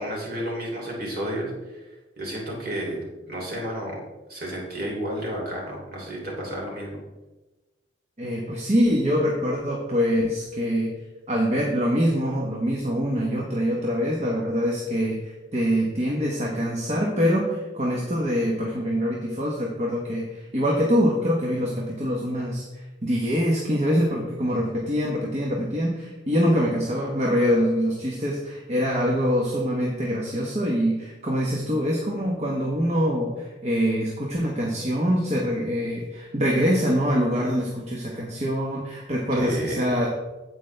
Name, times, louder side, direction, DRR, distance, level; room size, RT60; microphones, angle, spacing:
voice 1, 0.0-1.8 2.2-3.0 3.3-4.0 4.3-7.0 39.3-39.9, right 1 dB, 50° right, -2 dB, 3.1 m, -31 dB
voice 2, 8.2-10.9 11.3-40.1, equal, 35° right, -2 dB, 1.1 m, -24 dB
9.4 x 8.0 x 3.4 m, 1.1 s
head